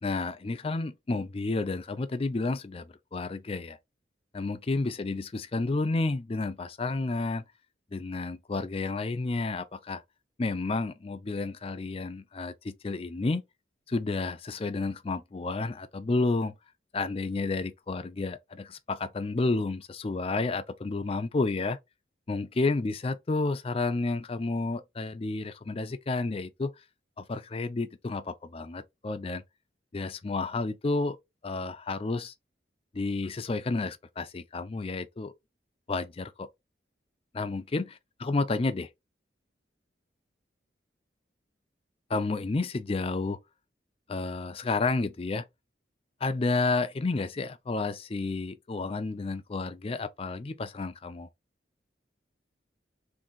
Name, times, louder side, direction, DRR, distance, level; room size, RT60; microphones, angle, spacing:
voice 1, 0.0-3.8 4.3-7.4 7.9-10.0 10.4-13.4 13.9-16.5 16.9-21.8 22.3-26.7 27.2-29.4 29.9-31.2 31.4-32.3 32.9-35.3 35.9-36.5 37.3-37.9 38.2-38.9 42.1-43.4 44.1-45.4 46.2-51.3, left 3 dB, 30° left, 0.4 m, -31 dB
3.7 x 2.6 x 3.9 m
head